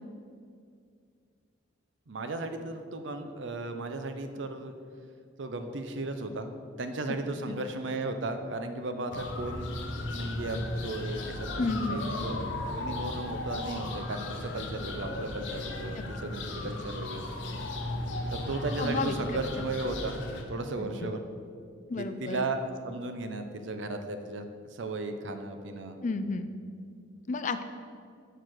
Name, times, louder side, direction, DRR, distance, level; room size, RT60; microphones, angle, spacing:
voice 1, 2.1-4.7 5.4-6.5 6.8-9.8 10.1-12.4 12.8-17.2 18.3-20.2 20.5-21.2 22.0-26.0, right 2 dB, 75° right, 7 dB, 0.6 m, -35 dB
sound 1, 9.1-20.4, left 2 dB, 80° left, 0.8 m, -35 dB
voice 2, 11.6-12.0 16.0-16.1 18.8-19.2 19.6-19.7 20.8-20.9 21.9-22.5 26.0-26.5 27.3-27.6, left 3 dB, 40° left, 10 dB, 0.4 m, -31 dB
6.7 x 4.4 x 6.1 m, 2.3 s
head